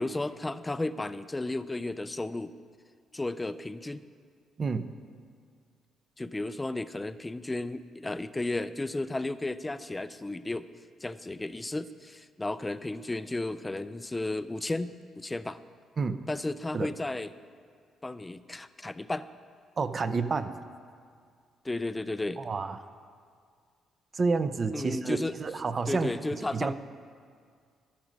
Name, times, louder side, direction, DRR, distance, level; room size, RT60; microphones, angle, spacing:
voice 1, 0.0-2.5 3.1-4.0 6.2-10.7 11.0-15.6 16.3-17.3 18.0-19.2 21.6-22.4 24.7-25.4 25.9-26.7, left 2 dB, 15° left, 13 dB, 0.4 m, -33 dB
voice 2, 4.6-4.9 16.0-16.2 16.7-16.9 19.8-20.5 22.4-22.8 24.1-26.1 26.5-26.7, right 4 dB, 40° right, 11 dB, 0.5 m, -29 dB
13.0 x 6.1 x 5.2 m, 2.1 s
cardioid pair, 90°, 0 cm